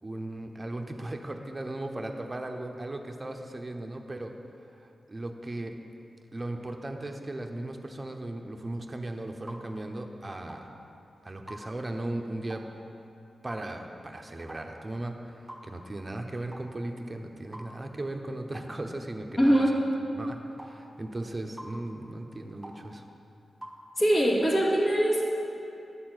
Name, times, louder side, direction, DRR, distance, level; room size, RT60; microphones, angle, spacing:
voice 1, 0.0-4.3 5.1-5.7 6.3-10.7 11.2-12.6 13.4-15.3 15.6-19.6 20.2-23.0, right 1 dB, 25° right, 3 dB, 0.8 m, -37 dB
sound 1, 9.5-9.7 10.5-10.7 11.5-11.7 12.5-12.7 13.5-13.7 14.5-14.7 15.5-15.7 16.5-16.7 17.5-17.7 18.5-18.7 19.5-19.7 20.6-20.8 21.6-21.8 22.6-22.8 23.6-23.8, right 1 dB, 10° right, 1.3 m, -44 dB
voice 2, 19.4-19.7 24.0-25.2, equal, 40° left, -4 dB, 2.1 m, -22 dB
11.0 x 4.3 x 7.8 m, 2.7 s
cardioid pair, 75°, 0 cm